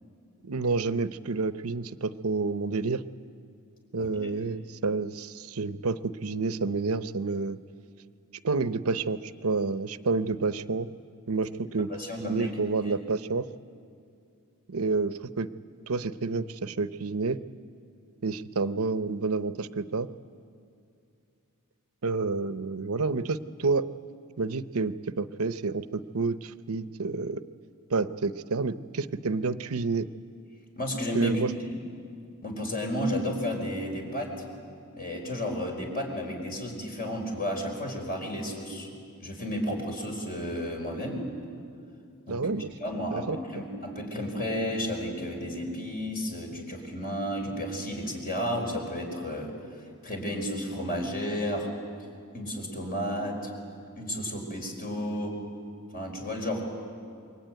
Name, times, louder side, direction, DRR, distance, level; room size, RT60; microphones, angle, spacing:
voice 1, 0.4-3.0 3.9-7.6 8.4-10.9 11.3-11.9 12.2-13.5 14.7-15.5 15.9-17.4 18.2-20.1 22.0-23.9 24.4-27.4 27.9-30.1 31.1-31.5 42.3-42.7 43.1-43.4, right 4 dB, 85° right, 13 dB, 0.8 m, -29 dB
voice 2, 4.0-4.4 11.9-12.5 12.9-13.0 30.8-31.4 32.4-34.4 34.9-38.9 39.2-41.3 42.3-42.5 42.8-49.5 50.0-51.7 52.3-53.5 54.0-55.4 55.9-56.6, equal, 45° left, 2 dB, 5.2 m, -32 dB
27.5 x 23.5 x 9.2 m, 2.5 s
head